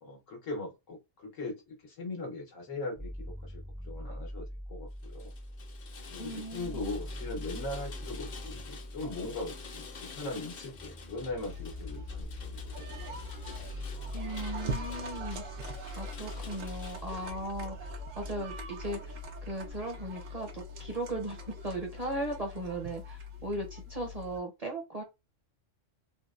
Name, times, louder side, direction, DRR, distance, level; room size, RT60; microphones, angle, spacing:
voice 1, 0.0-5.3 6.1-13.3 16.3-16.4, left 2 dB, 90° left, 1.5 m, -40 dB
sound 1, 3.0-20.9, equal, 5° right, 0.3 m, -43 dB
Rain, 5.0-17.3, left 6 dB, 55° left, 0.5 m, -49 dB
voice 2, 6.2-7.0 14.1-15.4 16.0-17.9 18.2-21.4 21.6-25.0, right 1 dB, 40° right, 0.6 m, -37 dB
sound 2, 11.5-24.4, left 1 dB, 90° right, 1.1 m, -43 dB
3.7 x 2.1 x 2.4 m
omnidirectional pair, 1.3 m